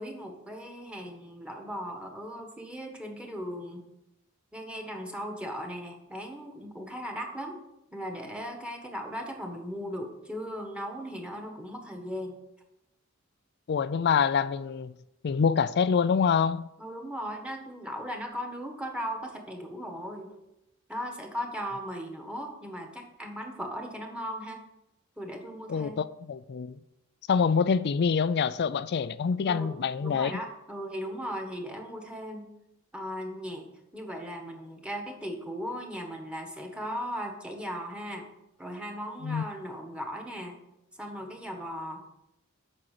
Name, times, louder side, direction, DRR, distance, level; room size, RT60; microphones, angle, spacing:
voice 1, 0.0-3.9 4.5-7.6 7.9-12.4 16.8-20.3 20.9-24.6 25.2-26.0 29.5-32.5 32.9-33.7 33.9-38.3 38.6-40.6 41.0-42.0, equal, 5° right, 1.5 m, -37 dB
voice 2, 13.7-14.9 15.2-16.7 25.7-26.7 27.3-30.3 39.2-39.4, left 6 dB, 50° left, 0.4 m, -26 dB
8.6 x 6.3 x 6.6 m
head